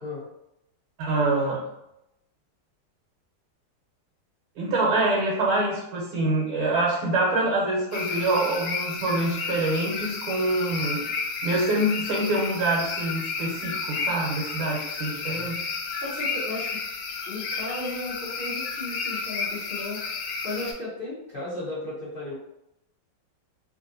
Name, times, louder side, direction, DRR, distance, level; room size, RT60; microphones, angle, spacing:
voice 1, 1.0-1.6 4.6-11.0 11.4-15.6, right 2 dB, 80° right, -3 dB, 1.6 m, -25 dB
sound 1, 7.9-20.7, left 4 dB, 80° left, 0.9 m, -32 dB
voice 2, 15.2-15.6 16.0-16.8 17.3-20.0 20.4-22.3, left 2 dB, 60° left, -9 dB, 0.5 m, -35 dB
3.4 x 2.5 x 2.6 m, 0.84 s
omnidirectional pair, 2.3 m